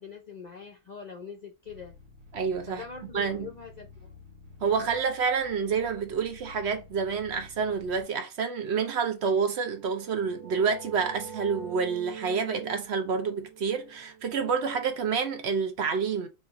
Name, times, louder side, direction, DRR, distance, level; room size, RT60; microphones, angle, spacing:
voice 1, 0.0-1.9 2.7-4.1, left 6 dB, 50° left, 0.5 m, -43 dB
sound 1, 1.6-8.0, left 4 dB, 85° right, 1.3 m, -51 dB
voice 2, 2.3-2.8 3.1-3.5 4.6-16.3, right 5 dB, 65° right, 0.9 m, -28 dB
sound 2, 9.7-15.3, right 7 dB, 35° right, 0.8 m, -44 dB
4.2 x 2.5 x 3.9 m
omnidirectional pair, 1.3 m